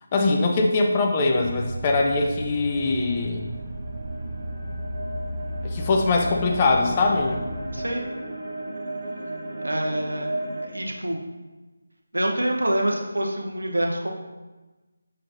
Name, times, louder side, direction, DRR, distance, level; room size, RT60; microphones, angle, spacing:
voice 1, 0.1-3.5 5.6-7.4, left 3 dB, 25° left, 2 dB, 0.6 m, -22 dB
sound 1, 1.4-7.9, right 1 dB, 30° right, 0.5 m, -34 dB
sound 2, 2.4-10.6, right 1 dB, 50° right, 1.2 m, -35 dB
voice 2, 7.7-8.1 9.6-10.3 10.6-11.2 12.1-14.1, right 1 dB, 75° right, 1 dB, 1.0 m, -26 dB
6.5 x 5.5 x 2.7 m, 1.2 s
figure-of-eight pair, 160°, 0 cm